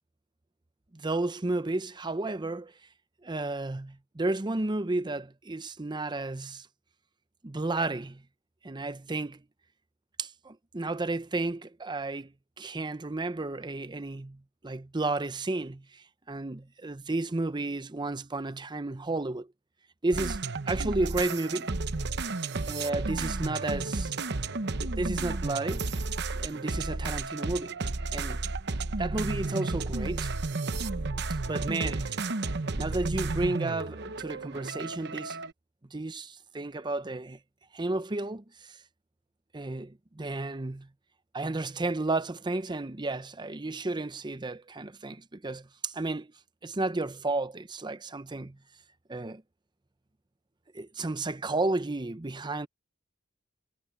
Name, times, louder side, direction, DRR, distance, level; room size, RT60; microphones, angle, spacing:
voice 1, 0.9-2.7 3.2-6.7 7.4-8.2 8.6-9.4 10.2-19.5 20.0-21.7 22.7-24.1 25.0-25.8 26.3-27.7 28.1-28.4 29.0-30.3 31.5-32.2 32.8-35.4 35.9-37.4 37.7-38.8 39.5-40.9 41.3-46.3 46.6-48.6 49.1-49.4 50.7-52.7, right 2 dB, 20° right, 0.7 m, -32 dB
sound 1, 20.1-35.5, right 3 dB, 55° right, 1.0 m, -32 dB
head